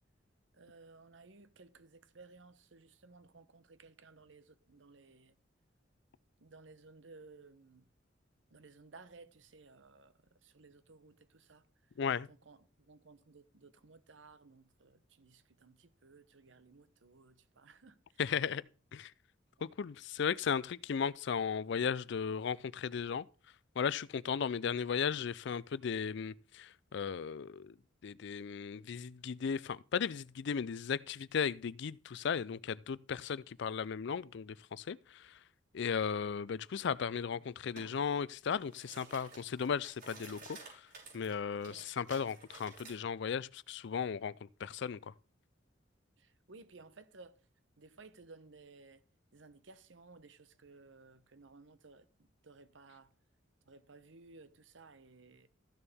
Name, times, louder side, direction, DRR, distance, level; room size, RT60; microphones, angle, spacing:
voice 1, 0.5-5.4 6.4-7.9 8.5-11.6 12.3-18.6 41.7-41.9 46.2-47.4 47.8-49.0 49.3-52.1 52.4-53.1 53.7-55.5, right 3 dB, 75° right, 1.0 m, -58 dB
voice 2, 18.2-18.6 18.9-19.1 19.6-23.2 23.8-27.7 28.0-35.0 35.7-40.6 41.1-44.3 44.6-45.0, left 6 dB, 65° left, 0.4 m, -36 dB
sound 1, 37.8-37.9 38.4-43.0, right 3 dB, 55° right, 5.8 m, -53 dB
14.5 x 6.9 x 3.5 m
head